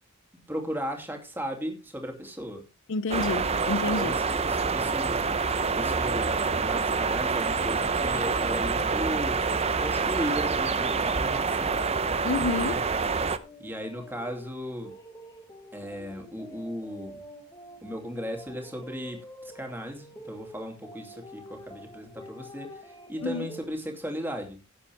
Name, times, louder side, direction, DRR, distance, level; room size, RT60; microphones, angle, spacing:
voice 1, 0.5-2.7 4.0-5.4 5.7-11.8 12.6-12.8 13.6-15.0 15.7-17.2 17.8-24.7, equal, 10° right, 2.6 m, -36 dB
voice 2, 2.9-4.2 12.2-12.8 23.2-23.5, left 3 dB, 60° left, 0.6 m, -29 dB
sound 1, 3.1-13.4, right 4 dB, 30° right, 0.7 m, -27 dB
sound 2, 10.1-23.7, equal, 15° left, 1.7 m, -47 dB
16.5 x 7.5 x 3.4 m
head